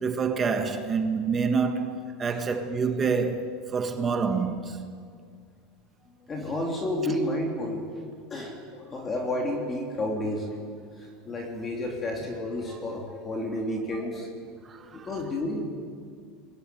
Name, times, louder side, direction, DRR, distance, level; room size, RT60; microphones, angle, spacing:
voice 1, 0.0-4.9 7.1-7.2 14.6-15.1, right 5 dB, 20° right, 1.5 m, -27 dB
voice 2, 6.3-7.9 8.3-10.6 11.0-14.3 14.8-15.6, left 1 dB, 20° left, 3.4 m, -31 dB
25.0 x 21.0 x 9.4 m
supercardioid pair, 160°, 0 cm